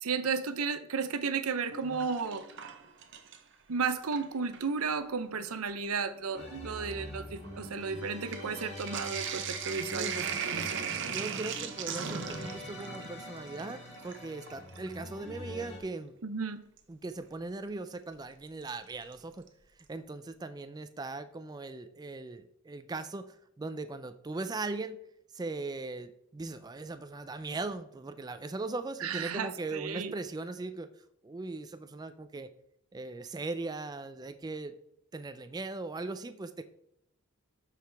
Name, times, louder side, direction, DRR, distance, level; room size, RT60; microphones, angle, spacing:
voice 1, 0.0-2.5 3.7-10.9 16.2-16.6 29.0-30.1, right 5 dB, 90° right, 11 dB, 0.7 m, -33 dB
Sink (filling or washing), 1.5-3.5 3.9-4.7 5.5-5.6 5.9-15.0 16.8-16.9 18.7-19.1 19.5-19.6 19.8-19.9, right 7 dB, 55° right, 0.8 m, -39 dB
sound 1, 6.4-15.8, left 1 dB, 50° left, 2.2 m, -45 dB
voice 2, 11.0-16.2 16.9-19.5 19.9-25.0 25.3-30.9 31.2-32.5 32.9-34.7 35.1-36.6, right 3 dB, 20° right, 10 dB, 0.3 m, -39 dB
12.5 x 4.8 x 3.4 m, 0.75 s
head